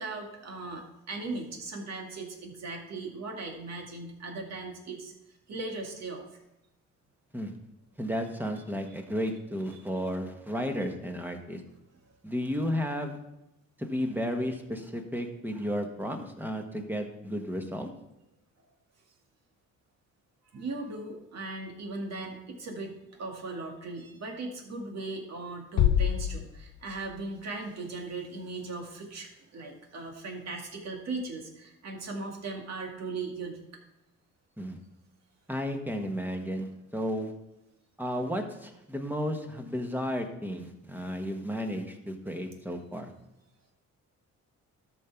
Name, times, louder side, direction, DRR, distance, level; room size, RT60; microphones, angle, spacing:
voice 1, 0.0-5.1 5.5-6.2 20.5-33.6, right 3 dB, 60° right, 1 dB, 2.0 m, -38 dB
voice 2, 8.0-11.6 12.2-13.2 13.8-17.9 34.6-34.8 35.5-37.3 38.0-43.1, equal, 5° right, 4 dB, 1.4 m, -33 dB
sound 1, 25.8-27.7, left 10 dB, 65° left, 0.6 m, -27 dB
12.5 x 5.6 x 4.6 m, 0.92 s
cardioid pair, 90°, 30 cm